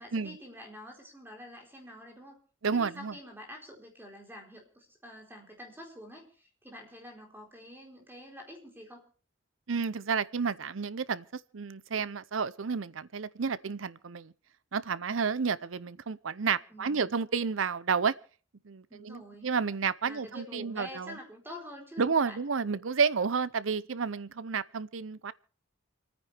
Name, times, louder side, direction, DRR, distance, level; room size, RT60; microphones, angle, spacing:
voice 1, 0.0-2.4 2.7-9.1 16.7-17.2 18.9-19.5 20.0-22.4, equal, 10° right, 4.1 m, -47 dB
voice 2, 2.6-3.1 9.7-11.2 11.5-14.3 14.7-18.1 18.7-21.2 22.0-25.3, right 5 dB, 85° right, 0.7 m, -31 dB
28.5 x 9.7 x 3.5 m
head